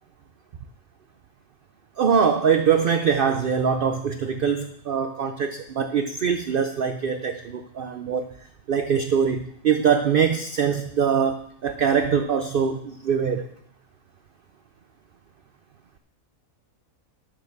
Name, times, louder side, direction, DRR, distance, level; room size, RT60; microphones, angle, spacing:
voice 1, 2.0-8.3 8.7-13.4, right 7 dB, 55° right, 8 dB, 0.6 m, -23 dB
9.2 x 6.5 x 6.6 m, 0.71 s
omnidirectional pair, 1.4 m